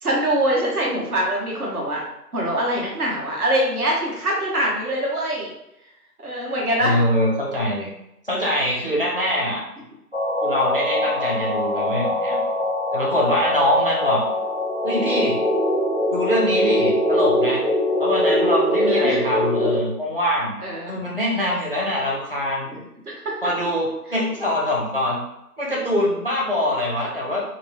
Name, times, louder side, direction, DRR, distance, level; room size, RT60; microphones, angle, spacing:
voice 1, 0.0-2.0 2.3-5.5 6.2-7.0 8.9-9.0 18.8-19.2 20.6-21.0 22.7-23.3, right 1 dB, 60° right, -3 dB, 1.2 m, -24 dB
voice 2, 6.8-7.9 8.2-9.6 10.4-12.4 12.9-14.2 14.8-15.4 16.1-17.6 18.0-20.6 20.9-22.7 23.4-25.2 25.6-27.4, left 1 dB, 35° left, -4 dB, 0.5 m, -23 dB
sound 1, 10.1-19.8, left 1 dB, 40° right, 0.4 m, -22 dB
3.4 x 2.0 x 2.8 m, 0.84 s
figure-of-eight pair, 155°, 50 cm